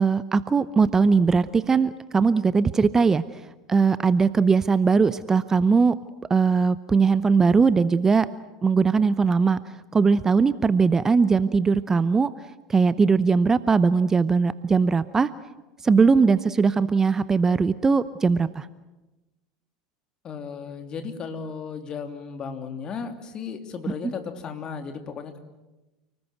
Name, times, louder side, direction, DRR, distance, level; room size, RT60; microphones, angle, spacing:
voice 1, 0.0-3.4 3.7-6.0 6.3-8.3 8.6-9.6 9.9-12.3 12.7-15.3 15.8-18.7 24.0-24.1, right 5 dB, 20° right, 15 dB, 0.8 m, -20 dB
voice 2, 20.2-25.4, left 6 dB, 35° left, 7 dB, 3.0 m, -35 dB
29.0 x 19.5 x 8.0 m, 1.1 s
figure-of-eight pair, 75°, 2 cm